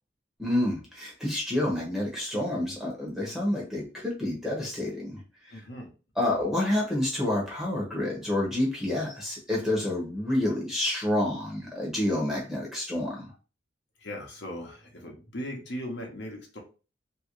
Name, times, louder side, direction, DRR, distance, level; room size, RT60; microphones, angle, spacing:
voice 1, 0.4-5.2 5.5-5.6 6.2-13.3, left 1 dB, ahead, -3 dB, 1.1 m, -28 dB
voice 2, 5.5-5.9 14.0-16.6, equal, 60° left, 1 dB, 0.9 m, -38 dB
3.0 x 2.7 x 3.1 m, 0.34 s
head